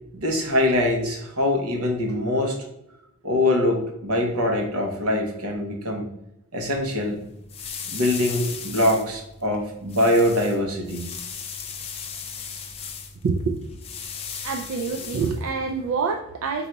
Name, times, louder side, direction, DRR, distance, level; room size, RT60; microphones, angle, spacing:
voice 1, 0.1-2.6 3.2-6.1 6.5-7.2 7.9-11.1, left 1 dB, 85° right, 2 dB, 1.1 m, -23 dB
sound 1, 6.7-15.9, left 6 dB, 25° left, 0.4 m, -37 dB
voice 2, 13.2-13.8 14.4-16.7, right 4 dB, 70° right, 4 dB, 0.4 m, -26 dB
3.9 x 2.7 x 4.5 m, 0.86 s
head